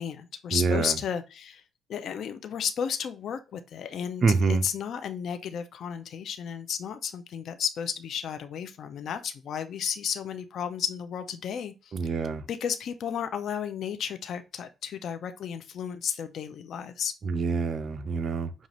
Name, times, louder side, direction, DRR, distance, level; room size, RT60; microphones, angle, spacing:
voice 1, 0.0-1.6 1.9-11.9 12.5-17.1, left 8 dB, 65° left, 0.5 m, -33 dB
voice 2, 0.5-0.9 4.2-4.6 11.9-12.4 17.2-18.7, right 4 dB, 50° right, 0.7 m, -26 dB
5.4 x 2.5 x 2.9 m
cardioid pair, 90°, 0 cm